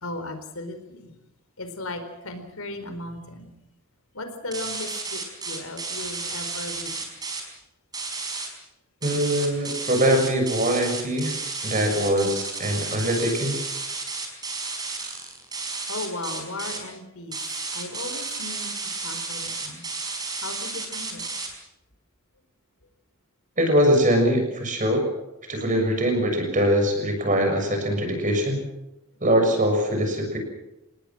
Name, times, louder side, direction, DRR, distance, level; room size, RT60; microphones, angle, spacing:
voice 1, 0.0-1.1 1.6-3.5 4.1-5.2 5.5-7.0 15.9-17.3 17.7-18.7 19.0-19.8 20.4-21.3, left 2 dB, 70° left, 7 dB, 4.5 m, -36 dB
sound 1, 4.5-7.4 7.9-8.5 9.0-16.8 17.3-21.5, right 3 dB, 15° right, 5.0 m, -32 dB
voice 2, 9.0-13.6 23.6-25.0 25.5-28.6 29.2-30.4, equal, 35° right, 4 dB, 6.7 m, -22 dB
29.0 x 19.0 x 6.1 m, 0.92 s
head